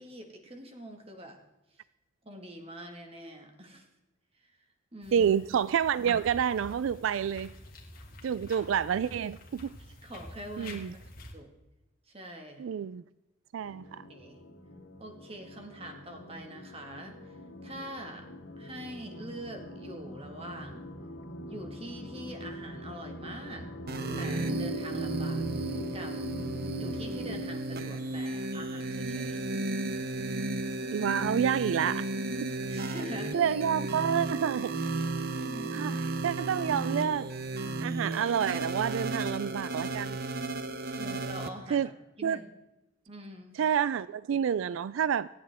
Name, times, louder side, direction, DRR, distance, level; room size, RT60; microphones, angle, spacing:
voice 1, 0.0-1.4 1.7-1.8 2.2-3.9 4.4-4.5 4.9-5.3 10.0-11.0 11.3-11.5 12.1-12.6 14.1-14.4 15.0-18.3 18.6-20.9 21.5-23.7 24.2-26.2 26.7-29.4 32.7-33.5 35.3-35.9 41.0-41.9 42.2-42.4 43.1-43.6, right 1 dB, 30° right, 1.9 m, -44 dB
sound 1, 5.0-11.3, left 2 dB, 45° left, 2.6 m, -48 dB
voice 2, 5.1-7.5 8.2-9.7 10.6-10.9 12.6-13.0 13.5-14.0 30.9-32.1 32.4-32.5 33.3-34.7 35.7-37.3 37.8-40.2 41.7-41.9 42.2-42.4 43.6-45.3, right 8 dB, 80° right, 0.3 m, -28 dB
sound 2, 13.6-27.4, equal, 75° left, 2.6 m, -44 dB
sound 3, 23.9-41.5, right 2 dB, 50° right, 0.9 m, -34 dB
26.0 x 8.8 x 3.6 m
head